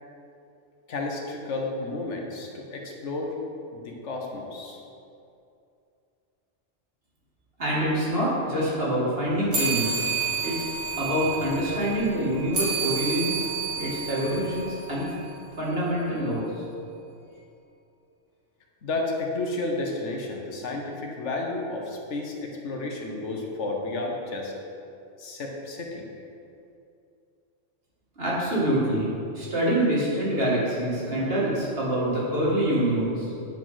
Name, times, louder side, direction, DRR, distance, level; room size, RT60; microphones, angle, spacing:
voice 1, 0.9-3.4 3.7-4.8 18.8-24.5 25.2-26.1, left 2 dB, 75° left, 1 dB, 1.4 m, -32 dB
voice 2, 7.6-10.1 10.4-10.7 11.0-13.4 13.8-15.1 15.6-16.5 28.2-29.1 29.3-33.3, right 1 dB, 55° right, -7 dB, 2.5 m, -26 dB
sound 1, 9.5-15.3, right 5 dB, 90° right, 2.4 m, -30 dB
9.1 x 5.2 x 5.7 m, 2.6 s
omnidirectional pair, 1.2 m